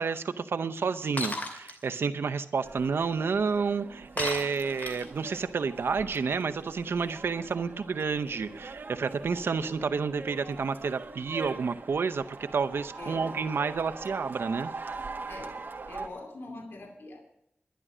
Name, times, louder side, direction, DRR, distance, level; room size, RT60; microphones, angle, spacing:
voice 1, 0.0-14.7, right 5 dB, 90° right, 10 dB, 0.7 m, -30 dB
Shatter, 1.2-1.7 4.2-5.2, left 2 dB, 50° left, 2.5 m, -33 dB
sound 1, 2.6-16.1, right 3 dB, 60° right, 1.6 m, -42 dB
voice 2, 13.0-13.4 15.3-15.6 15.9-17.3, left 2 dB, 70° left, 3 dB, 2.5 m, -43 dB
11.5 x 11.0 x 6.1 m, 0.79 s
wide cardioid pair, 70°, 4 cm